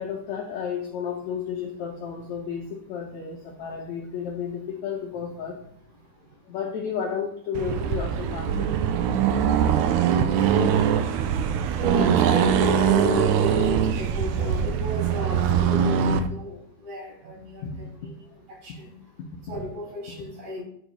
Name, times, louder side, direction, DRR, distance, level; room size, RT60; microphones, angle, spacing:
voice 1, 0.0-5.6 6.5-8.7 17.6-17.9, left 7 dB, 75° left, 2 dB, 1.6 m, -32 dB
Accelerating revving vroom, 7.5-16.3, right 8 dB, 85° right, 1.7 m, -22 dB
voice 2, 11.8-18.1 18.6-18.9 19.5-20.6, equal, 70° right, -4 dB, 5.6 m, -32 dB
8.9 x 4.5 x 5.0 m, 0.67 s
omnidirectional pair, 4.1 m